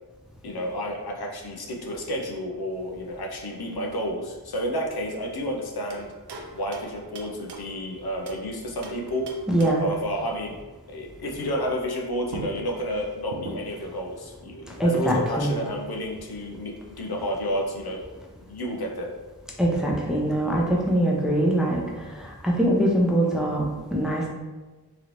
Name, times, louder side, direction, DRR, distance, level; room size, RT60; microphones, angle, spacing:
voice 1, 0.4-6.1 6.5-9.3 9.8-10.5 10.9-18.0 18.5-19.1, equal, 70° left, 0 dB, 0.6 m, -31 dB
sound 1, 5.9-8.5 8.8-10.0 11.9-12.0 12.3-13.9, right 3 dB, 85° right, 0.5 m, -40 dB
voice 2, 9.5-9.8 14.8-15.5 19.6-23.6 23.9-24.3, right 1 dB, ahead, -3 dB, 0.6 m, -23 dB
3.0 x 3.0 x 2.5 m, 1.2 s
wide cardioid pair, 50°, 39 cm